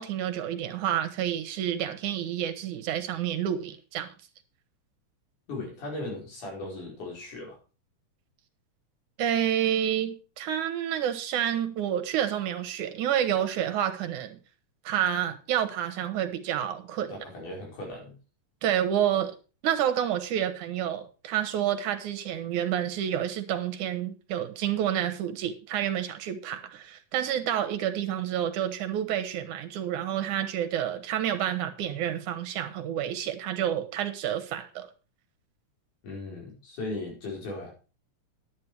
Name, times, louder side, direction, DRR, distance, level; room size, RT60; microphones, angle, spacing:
voice 1, 0.0-4.1 9.2-14.4 14.8-17.1 18.6-19.3 19.6-34.9, right 10 dB, 80° right, 9 dB, 2.7 m, -29 dB
voice 2, 5.5-7.6 17.1-18.2 36.0-37.7, left 2 dB, 85° left, 0 dB, 6.1 m, -37 dB
10.5 x 9.6 x 4.6 m, 0.34 s
omnidirectional pair, 3.5 m